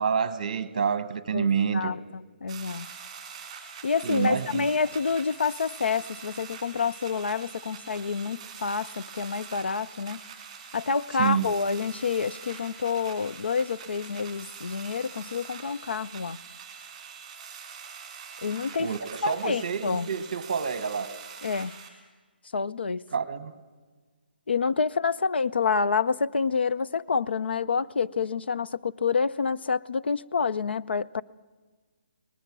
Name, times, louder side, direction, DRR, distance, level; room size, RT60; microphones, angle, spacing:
voice 1, 0.0-1.9 4.0-4.6 11.2-11.6 18.8-21.1 23.1-23.5, right 6 dB, 30° right, 1.1 m, -28 dB
voice 2, 1.3-2.9 3.8-10.2 10.7-16.4 18.4-18.9 19.2-20.1 21.4-21.7 22.5-23.0 24.5-31.2, left 5 dB, 70° left, 0.6 m, -28 dB
sound 1, 2.5-21.9, right 6 dB, 10° right, 2.7 m, -44 dB
23.5 x 19.5 x 6.1 m
hypercardioid pair, 175°, 6 cm